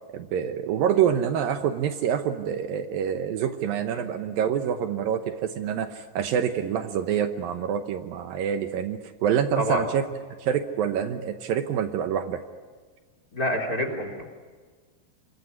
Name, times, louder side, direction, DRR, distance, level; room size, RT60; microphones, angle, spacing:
voice 1, 0.1-10.0 10.4-12.4, right 8 dB, 70° right, 8 dB, 2.6 m, -26 dB
voice 2, 9.6-9.9 13.3-14.2, equal, 25° left, 5 dB, 3.6 m, -27 dB
26.0 x 21.5 x 9.6 m, 1.5 s
omnidirectional pair, 4.4 m